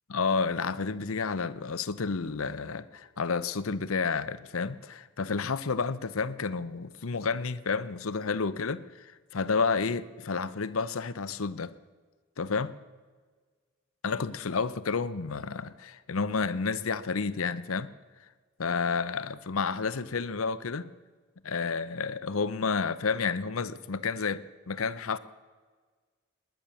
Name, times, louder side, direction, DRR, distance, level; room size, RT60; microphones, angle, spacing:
voice 1, 0.1-11.7 12.4-12.7 14.0-17.9 18.6-20.9 21.4-25.2, left 5 dB, 80° left, 0.7 m, -30 dB
19.5 x 10.5 x 7.0 m
head